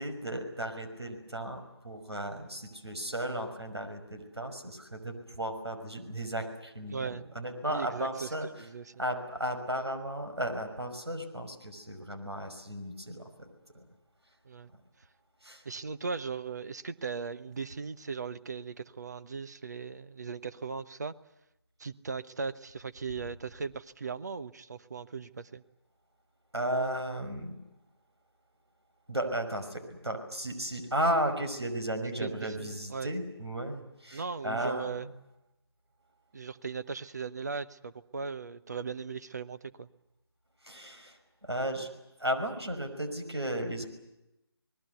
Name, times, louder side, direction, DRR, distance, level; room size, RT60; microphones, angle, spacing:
voice 1, 0.0-8.5 9.0-13.5 13.7-13.9 15.4-15.6 26.5-27.6 29.1-35.1 40.6-41.9 42.2-43.9, right 1 dB, 75° right, 6 dB, 5.5 m, -34 dB
voice 2, 6.9-7.2 7.7-8.9 14.4-14.7 15.6-21.1 21.8-25.6 32.2-33.1 34.1-35.1 36.3-39.9, right 5 dB, 40° right, 13 dB, 1.1 m, -38 dB
28.0 x 20.5 x 8.2 m, 0.92 s
figure-of-eight pair, 155°, 14 cm